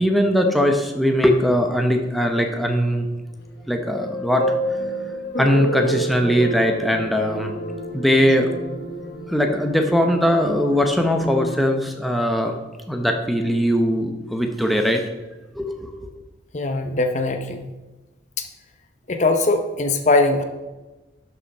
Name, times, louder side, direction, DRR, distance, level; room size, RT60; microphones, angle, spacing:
voice 1, 0.0-3.1 3.7-4.4 5.4-7.5 7.9-8.5 9.3-12.5 12.9-15.0 15.6-15.9, equal, ahead, 2 dB, 0.8 m, -20 dB
sound 1, 3.7-11.6, equal, 60° left, 1.1 m, -29 dB
voice 2, 16.5-17.6 18.4-18.5 19.1-20.4, left 2 dB, 40° left, 6 dB, 0.7 m, -20 dB
12.0 x 5.9 x 4.2 m, 1.1 s
head